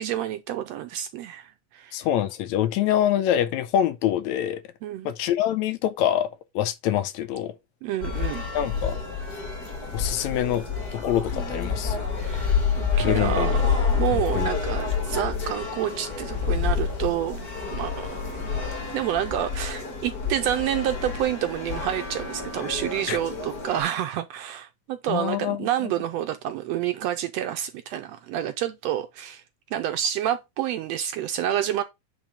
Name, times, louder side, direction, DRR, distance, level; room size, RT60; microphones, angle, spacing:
voice 1, 0.0-2.1 4.8-5.1 7.8-8.5 12.2-18.7 18.9-29.4 29.7-31.8, right 11 dB, 75° right, 1.6 m, -29 dB
voice 2, 1.9-4.6 5.1-6.3 6.6-7.6 8.5-9.0 9.9-10.7 10.9-12.1 13.0-13.5 14.1-14.5 23.1-23.2 25.1-25.9, left 11 dB, 80° left, 1.9 m, -25 dB
sound 1, 8.0-23.8, left 5 dB, 35° left, 2.2 m, -28 dB
9.0 x 3.5 x 4.9 m
omnidirectional pair, 3.4 m